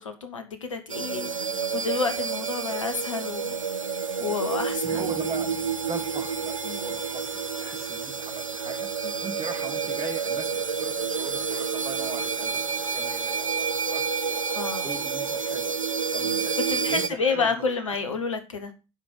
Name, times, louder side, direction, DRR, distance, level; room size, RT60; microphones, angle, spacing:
voice 1, 0.0-3.5 4.2-5.1 6.6-6.9 9.0-9.1 14.5-14.9 16.2-16.4 16.7-18.7, left 4 dB, 80° left, 1.4 m, -30 dB
sound 1, 0.9-17.1, right 5 dB, 90° right, 0.5 m, -29 dB
Strum, 4.8-11.7, equal, 60° right, 4.0 m, -50 dB
voice 2, 4.9-5.5 5.9-8.9 9.2-14.4 14.8-15.7 16.1-16.5 16.8-17.9, right 5 dB, 40° right, 2.8 m, -39 dB
10.5 x 5.1 x 6.2 m
figure-of-eight pair, 55°, 16 cm